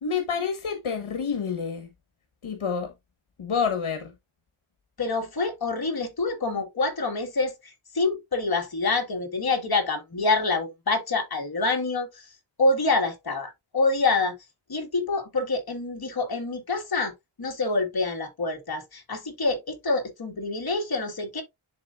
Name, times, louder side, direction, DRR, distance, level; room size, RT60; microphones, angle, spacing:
voice 1, 0.0-1.9 2.4-2.9 3.4-4.1, left 6 dB, 70° left, 1.5 m, -28 dB
voice 2, 5.0-12.3 12.6-14.3 14.7-17.1 17.4-21.4, left 3 dB, 45° left, 2.0 m, -26 dB
11.0 x 4.0 x 2.5 m
wide cardioid pair, 100°, 49 cm